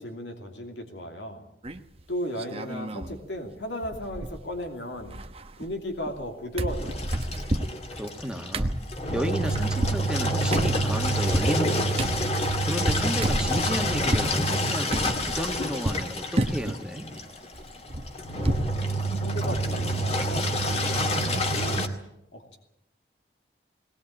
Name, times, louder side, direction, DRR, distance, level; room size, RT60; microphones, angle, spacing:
voice 1, 0.0-1.5 2.1-5.2 5.6-7.1 19.2-21.9 22.3-22.6, equal, 90° left, 3 dB, 2.8 m, -35 dB
sound 1, 1.6-2.0 2.4-3.2 3.5-3.6 3.8-4.7 4.9-6.3 6.6-14.3 14.9-16.1 16.4-16.8 17.2-18.8 19.1-19.2 19.5-19.7, right 1 dB, 35° right, 1.0 m, -31 dB
Engine, 6.7-21.9, equal, 35° left, 2.0 m, -27 dB
voice 2, 8.0-8.7 9.1-12.1 12.7-17.1, equal, 5° right, 4 dB, 1.6 m, -32 dB
20.0 x 19.5 x 8.8 m, 0.86 s
head